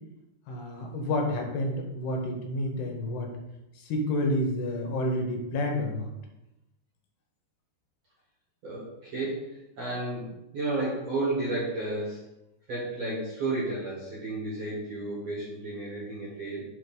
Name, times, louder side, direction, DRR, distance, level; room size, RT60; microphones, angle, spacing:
voice 1, 0.5-3.3 3.8-6.1, left 1 dB, 75° left, 2 dB, 2.8 m, -29 dB
voice 2, 8.6-12.2 12.7-16.7, right 2 dB, 55° right, -6 dB, 1.9 m, -32 dB
7.1 x 3.6 x 5.3 m, 0.90 s
omnidirectional pair, 5.1 m